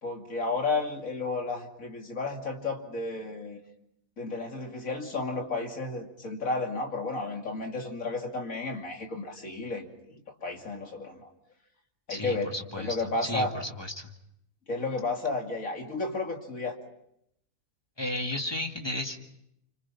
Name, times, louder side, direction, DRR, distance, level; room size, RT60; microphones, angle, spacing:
voice 1, 0.0-3.6 4.2-11.3 12.1-13.5 14.7-16.8, left 3 dB, 80° left, 2 dB, 3.0 m, -32 dB
voice 2, 12.1-14.1 18.0-19.2, left 1 dB, 20° left, 3 dB, 2.0 m, -34 dB
30.0 x 26.0 x 5.8 m, 0.77 s
omnidirectional pair, 1.4 m